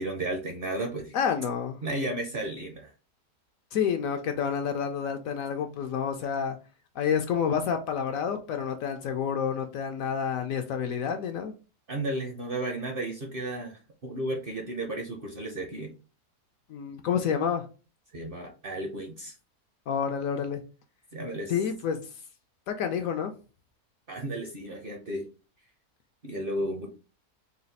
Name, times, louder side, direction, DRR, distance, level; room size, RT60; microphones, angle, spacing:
voice 1, 0.0-1.2 1.8-2.9 11.9-15.9 18.1-19.3 21.1-21.5 24.1-25.3 26.2-26.9, right 1 dB, 50° right, 0.7 m, -33 dB
voice 2, 1.1-1.8 3.7-6.6 7.0-11.5 16.7-17.6 19.9-20.6 21.5-22.0 22.7-23.3, left 7 dB, 70° left, 0.9 m, -29 dB
4.0 x 2.3 x 4.0 m
omnidirectional pair, 1.7 m